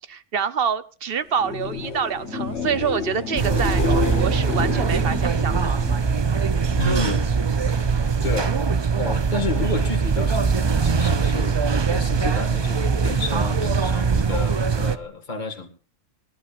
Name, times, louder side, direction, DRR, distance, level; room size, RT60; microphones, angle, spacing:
voice 1, 0.1-5.6, right 7 dB, 55° right, 14 dB, 1.0 m, -26 dB
sound 1, 1.3-7.1 7.4-8.0 15.0-15.1, left 6 dB, 65° left, 1.5 m, -31 dB
sound 2, 3.4-15.0, right 5 dB, 35° right, 0.4 m, -22 dB
voice 2, 6.7-7.3 7.7-8.5 9.0-15.7, left 2 dB, 40° left, 3 dB, 2.2 m, -30 dB
25.5 x 11.5 x 2.5 m, 0.39 s
omnidirectional pair, 1.3 m